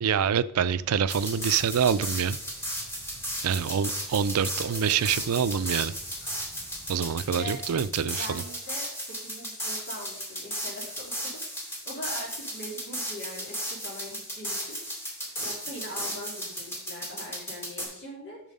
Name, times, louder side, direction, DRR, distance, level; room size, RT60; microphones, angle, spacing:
voice 1, 0.0-2.4 3.4-5.9 6.9-8.4, right 7 dB, 90° right, 14 dB, 0.4 m, -26 dB
sound 1, 0.5-7.9, equal, 45° right, 2.2 m, -51 dB
sound 2, 1.1-17.8, equal, 10° left, 2.1 m, -35 dB
voice 2, 8.2-11.4 11.7-14.8 15.4-18.4, equal, 55° left, -3 dB, 3.2 m, -41 dB
7.3 x 6.3 x 5.3 m, 0.67 s
head